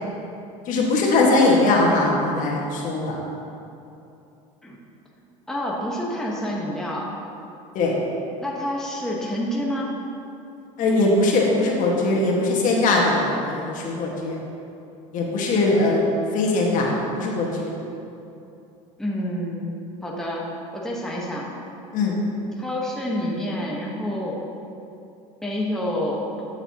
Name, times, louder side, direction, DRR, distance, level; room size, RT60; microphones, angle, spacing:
voice 1, 0.7-3.2 7.7-7.9 10.8-14.3 15.1-16.0 16.3-17.7 21.9-22.2, left 2 dB, 50° left, -2 dB, 1.7 m, -21 dB
voice 2, 5.5-7.1 8.4-9.9 15.5-15.9 19.0-19.7 20.0-21.5 22.6-24.4 25.4-26.5, left 1 dB, 5° left, -4 dB, 1.2 m, -28 dB
11.0 x 7.1 x 2.9 m, 2.7 s
supercardioid pair, 105°, 17 cm